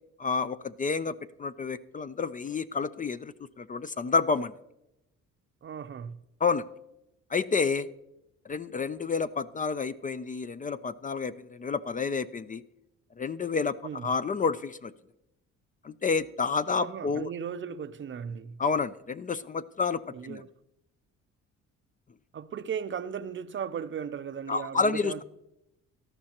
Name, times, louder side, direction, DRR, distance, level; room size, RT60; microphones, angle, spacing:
voice 1, 0.2-4.5 6.4-6.6 7.3-7.9 8.5-12.6 13.2-13.8 14.0-14.9 15.8-17.3 18.6-20.4 24.5-25.2, left 5 dB, 25° left, 0.4 m, -29 dB
voice 2, 5.6-6.2 13.8-14.1 16.7-18.6 20.1-20.5 22.3-25.2, right 7 dB, 40° right, 0.5 m, -36 dB
18.0 x 12.5 x 2.9 m
cardioid pair, 90°, 30 cm